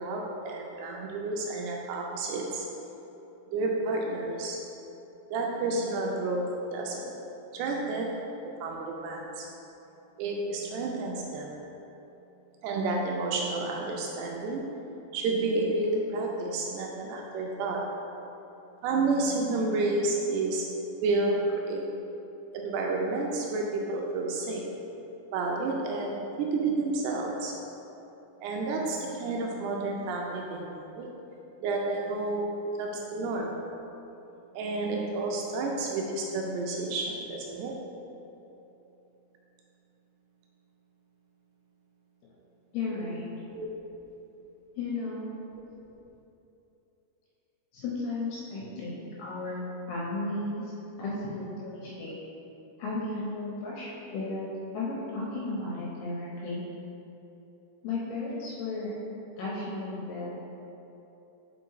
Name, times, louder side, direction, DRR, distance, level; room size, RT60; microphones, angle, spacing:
voice 1, 0.0-2.7 3.5-4.6 5.3-7.1 7.5-8.2 8.6-9.5 10.2-11.5 12.6-14.6 15.1-17.9 18.8-21.9 22.5-24.7 25.3-27.6 28.4-31.1 31.6-32.5 32.8-33.6 34.5-37.7 43.5-43.7, right 3 dB, 80° right, 0 dB, 2.6 m, -30 dB
voice 2, 42.7-43.3 44.8-45.3 47.7-49.6 49.9-50.6 51.0-52.1 52.8-54.5 54.7-56.6 57.8-58.9 59.4-60.3, left 2 dB, 75° left, -6 dB, 2.7 m, -34 dB
5.8 x 4.9 x 4.7 m, 3.0 s
omnidirectional pair, 5.1 m